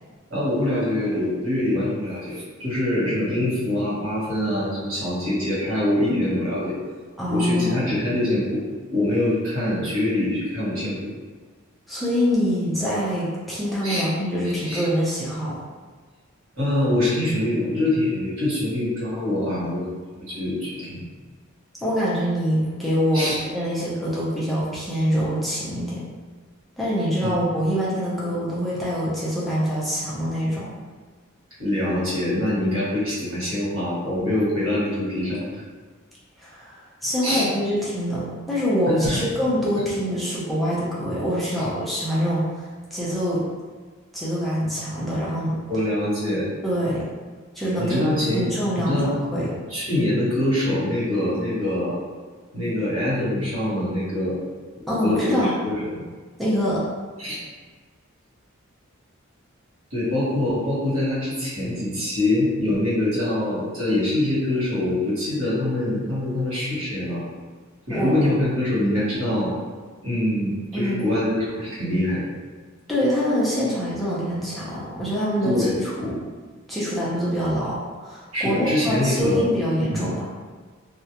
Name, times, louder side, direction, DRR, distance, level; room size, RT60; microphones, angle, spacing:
voice 1, 0.3-6.7 7.3-8.6 8.9-11.0 13.8-14.1 14.4-14.8 16.6-20.0 20.3-21.1 23.1-23.4 27.2-27.3 31.6-35.5 37.2-37.5 38.9-39.2 45.7-46.5 47.8-48.5 48.8-49.2 49.7-52.0 52.5-54.4 55.0-56.0 57.2-57.4 59.9-67.2 67.9-69.6 70.0-72.3 75.4-75.8 78.3-79.5 79.9-80.0, left 1 dB, 75° right, -9 dB, 1.1 m, -24 dB
voice 2, 7.2-7.9 11.9-15.5 21.8-26.0 26.8-30.7 36.4-43.4 44.1-45.6 46.6-47.1 47.5-48.0 48.3-49.0 49.3-49.5 54.9-55.5 56.4-56.8 67.9-68.1 70.7-71.1 72.9-76.2 76.7-80.3, equal, ahead, -10 dB, 0.5 m, -25 dB
2.3 x 2.0 x 2.8 m, 1.5 s
head